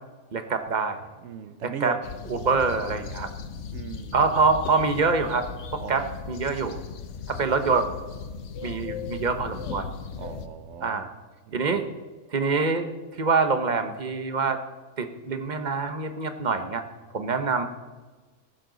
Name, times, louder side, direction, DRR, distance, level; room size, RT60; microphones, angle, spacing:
voice 1, 0.3-1.0 1.8-1.9 2.3-3.3 4.1-5.4 5.7-6.8 7.3-7.9 8.6-9.9 10.8-11.1 11.5-11.8 12.3-12.9 13.2-14.6 15.0-16.8 17.1-17.7, right 4 dB, 35° right, 8 dB, 1.0 m, -25 dB
voice 2, 1.2-2.0 3.7-4.3 5.8-6.4 10.2-11.1 11.5-11.8, right 7 dB, 60° right, 12 dB, 0.9 m, -38 dB
sound 1, 2.0-10.5, left 5 dB, 60° left, 1.1 m, -37 dB
14.5 x 12.0 x 3.9 m, 1.3 s
omnidirectional pair, 1.5 m